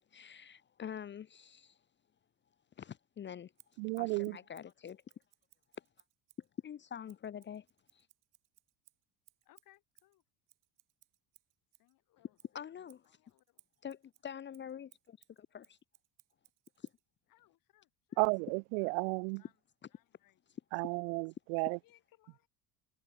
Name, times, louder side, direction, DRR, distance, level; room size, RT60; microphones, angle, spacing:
voice 1, 0.0-1.8 2.8-3.5 4.0-5.0 5.8-5.9 6.4-7.7 7.9-8.1 12.5-13.0 13.8-15.8 16.8-16.9, left 8 dB, 30° left, 0.8 m, -46 dB
Scissors, 3.6-6.5 7.1-11.9 12.4-17.0, right 16 dB, 55° right, 1.7 m, -68 dB
voice 2, 3.8-4.4 18.2-19.4 20.7-21.8, right 40 dB or more, 90° right, 0.5 m, -33 dB
voice 3, 9.4-10.2 11.8-13.6 17.3-18.3 18.8-19.0 19.4-19.6 19.9-20.4 21.0-21.1 21.8-22.5, left 16 dB, 60° left, 7.4 m, -68 dB
cardioid pair, 115°, 37 cm